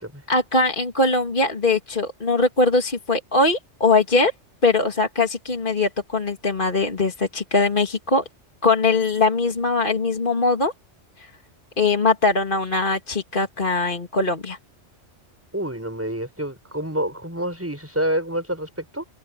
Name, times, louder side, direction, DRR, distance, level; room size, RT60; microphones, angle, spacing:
voice 1, 0.3-4.3 4.6-8.2 8.6-10.7 11.2-11.3 11.8-14.6, left 3 dB, 45° left, 2.5 m, -21 dB
voice 2, 15.5-19.0, right 1 dB, 10° right, 6.2 m, -28 dB
omnidirectional pair, 1.3 m